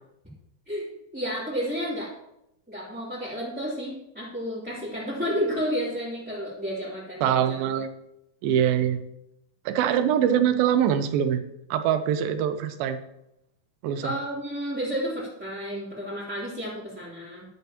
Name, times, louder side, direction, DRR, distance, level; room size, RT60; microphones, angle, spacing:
voice 1, 1.1-2.1 2.7-7.5 14.0-17.4, equal, 5° right, -10 dB, 2.6 m, -31 dB
voice 2, 7.2-7.9 8.4-9.0 9.7-11.4 11.7-13.0 13.8-14.1, right 9 dB, 90° right, 10 dB, 2.6 m, -23 dB
13.0 x 11.5 x 2.9 m, 0.83 s
omnidirectional pair, 4.1 m